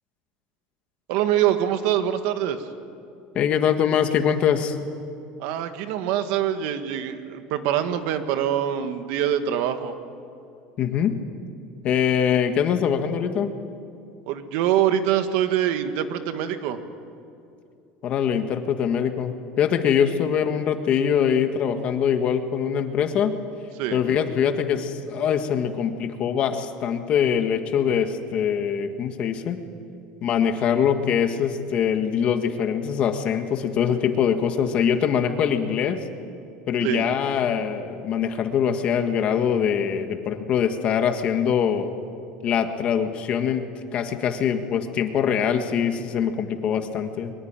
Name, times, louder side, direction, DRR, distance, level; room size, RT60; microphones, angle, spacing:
voice 1, 1.1-2.6 5.4-9.9 14.3-16.8 23.8-24.0 36.8-37.1, right 10 dB, 65° right, 8 dB, 1.8 m, -24 dB
voice 2, 3.3-4.8 10.8-11.1 11.8-13.5 18.0-23.3 23.9-29.6 30.2-36.0 36.7-41.9 42.4-43.6 43.9-47.3, left 8 dB, 35° left, 7 dB, 1.6 m, -23 dB
23.5 x 21.5 x 9.0 m, 2.6 s
cardioid pair, 165°, 3 cm